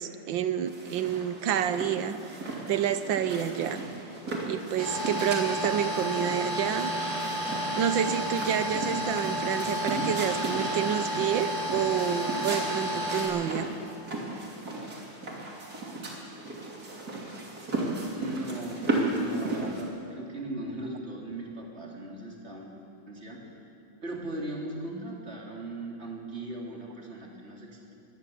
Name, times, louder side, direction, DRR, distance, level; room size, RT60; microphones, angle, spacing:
voice 1, 0.0-2.2 2.7-3.8 4.5-6.9 7.5-13.7, right 9 dB, 90° right, 11 dB, 1.6 m, -29 dB
sound 1, 0.7-19.8, right 2 dB, 50° right, 3.4 m, -36 dB
sound 2, 4.8-13.2, equal, 70° right, 6.9 m, -31 dB
voice 2, 18.2-22.8 23.1-23.5 24.0-27.9, right 1 dB, 35° right, -2 dB, 3.6 m, -38 dB
22.5 x 17.5 x 7.2 m, 2.7 s
omnidirectional pair, 2.0 m